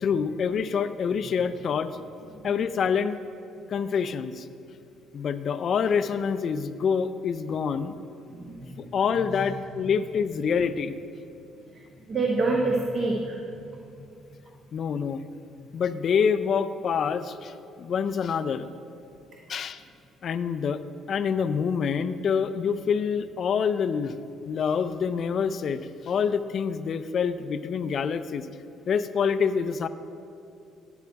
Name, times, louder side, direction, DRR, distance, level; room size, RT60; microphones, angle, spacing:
voice 1, 0.0-2.0 2.4-3.2 3.7-4.5 5.1-7.9 8.8-11.0 14.7-15.2 15.7-18.7 19.5-19.8 20.2-20.8 21.1-24.2 24.5-28.5 28.9-29.9, left 6 dB, 40° left, 12 dB, 0.4 m, -26 dB
voice 2, 8.3-8.9 9.3-9.4 11.7-11.8 12.1-13.9, right 3 dB, 35° right, -1 dB, 1.0 m, -28 dB
11.0 x 7.9 x 4.6 m, 2.7 s
cardioid pair, 150°, 0 cm